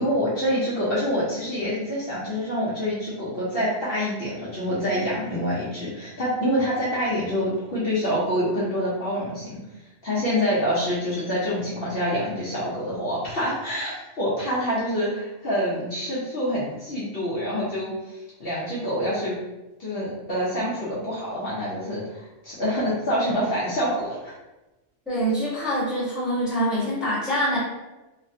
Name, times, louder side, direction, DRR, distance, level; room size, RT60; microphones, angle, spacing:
voice 1, 0.0-9.6 10.0-19.4 19.8-24.3, equal, 55° left, -8 dB, 0.8 m, -26 dB
voice 2, 25.1-27.6, equal, ahead, -9 dB, 1.0 m, -25 dB
3.1 x 2.1 x 2.6 m, 1.1 s
omnidirectional pair, 1.3 m